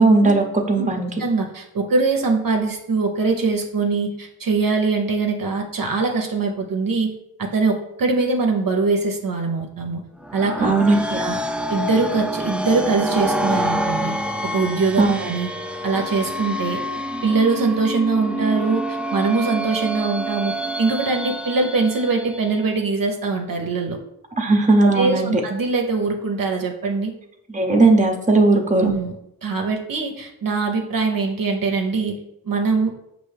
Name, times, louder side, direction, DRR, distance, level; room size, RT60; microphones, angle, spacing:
voice 1, 0.0-1.1 10.6-11.0 15.0-15.2 24.4-25.4 27.5-28.9, right 3 dB, 20° right, 3 dB, 0.7 m, -17 dB
voice 2, 1.2-7.1 7.4-10.0 10.3-10.7 11.2-11.4 11.7-14.1 14.4-15.5 15.8-16.8 17.2-24.0 24.8-27.1 28.8-29.1 29.4-32.2 32.4-32.9, right 4 dB, 55° right, 2 dB, 0.7 m, -22 dB
sound 1, 10.2-22.7, equal, 5° right, 0.3 m, -27 dB
5.3 x 2.6 x 3.3 m, 0.81 s
cardioid pair, 40°, 40 cm